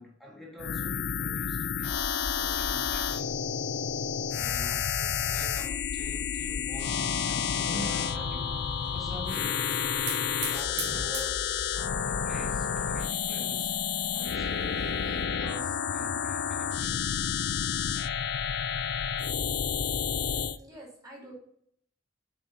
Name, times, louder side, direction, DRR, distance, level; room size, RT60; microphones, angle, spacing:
voice 1, 0.0-3.4 4.3-8.6 8.9-9.6 10.4-11.5 12.0-13.8 14.1-17.1, left 1 dB, ahead, 1.6 m, -46 dB
sound 1, 0.6-20.6, left 7 dB, 65° left, 0.4 m, -30 dB
voice 2, 4.4-5.2 20.2-21.3, right 1 dB, 20° right, 2.6 m, -49 dB
sound 2, 7.6-13.2, equal, 55° right, 2.5 m, -45 dB
Hiss / Fire, 8.4-15.2, right 4 dB, 80° right, 1.7 m, -43 dB
6.8 x 4.4 x 3.9 m
head